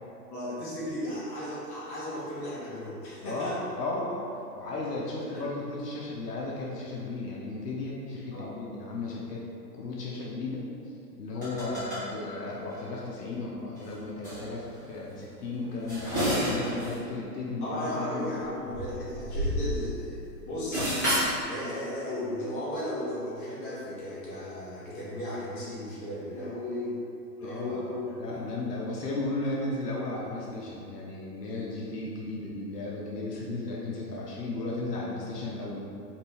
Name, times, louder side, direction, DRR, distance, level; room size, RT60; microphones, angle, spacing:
voice 1, 0.3-3.7 5.3-5.4 8.3-8.5 16.9-17.1 17.6-20.9 21.5-27.0 27.4-28.3, left 1 dB, 30° left, -8 dB, 1.3 m, -35 dB
voice 2, 3.2-4.2 4.6-9.4 9.7-10.6 11.1-18.3 27.4-27.8 28.2-35.9, left 2 dB, 70° left, -4 dB, 0.9 m, -35 dB
sound 1, 11.3-12.1 12.7-12.8 13.8-13.9 14.2-14.4 15.6-17.0 17.3-17.4 18.4-20.1 20.4-21.4, equal, 10° left, 0.4 m, -30 dB
5.1 x 2.6 x 3.4 m, 2.6 s
hypercardioid pair, 150°, 50 cm